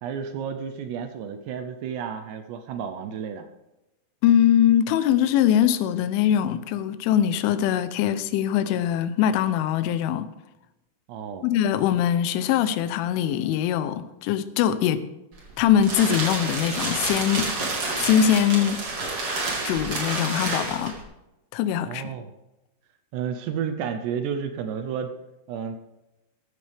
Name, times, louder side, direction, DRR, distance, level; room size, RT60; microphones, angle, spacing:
voice 1, 0.0-3.5 11.1-11.5 21.9-22.3 23.1-25.1 25.5-25.8, right 7 dB, 75° right, 2.7 m, -31 dB
voice 2, 4.2-10.3 11.4-15.0 15.6-17.5 18.0-18.8 19.6-20.9 21.5-22.1, left 10 dB, 85° left, 3.2 m, -22 dB
sound 1, 15.3-21.0, right 2 dB, 35° right, 2.9 m, -29 dB
14.0 x 13.0 x 3.5 m
omnidirectional pair, 5.5 m